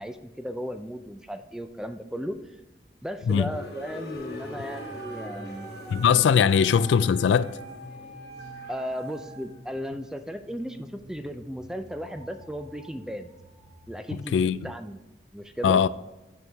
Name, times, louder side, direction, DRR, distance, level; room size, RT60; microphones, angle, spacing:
voice 1, 0.0-2.4 3.0-5.7 8.7-13.3 13.9-15.0 15.3-15.8, equal, 5° right, 0.4 m, -35 dB
sound 1, 3.4-9.3, left 2 dB, 60° left, 1.1 m, -43 dB
sound 2, 4.1-14.5, equal, 40° right, 1.1 m, -50 dB
Wind instrument woodwind instrument, 4.7-9.5, right 5 dB, 85° right, 1.6 m, -44 dB
voice 2, 5.9-7.6 14.3-14.6 15.6-15.9, left 7 dB, 90° left, 0.3 m, -20 dB
6.8 x 6.3 x 3.4 m
head